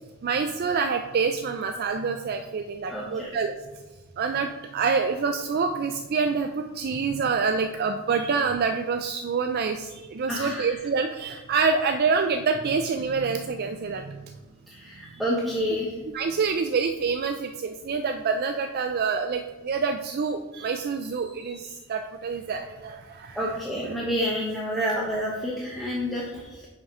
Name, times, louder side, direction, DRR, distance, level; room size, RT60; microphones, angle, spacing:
voice 1, 0.2-3.5 4.2-14.4 16.1-23.4, right 5 dB, 45° right, 6 dB, 0.3 m, -27 dB
voice 2, 2.9-3.3 10.3-10.7 14.7-15.9 23.3-26.7, equal, ahead, -6 dB, 0.9 m, -29 dB
5.7 x 4.9 x 5.4 m, 1.2 s
head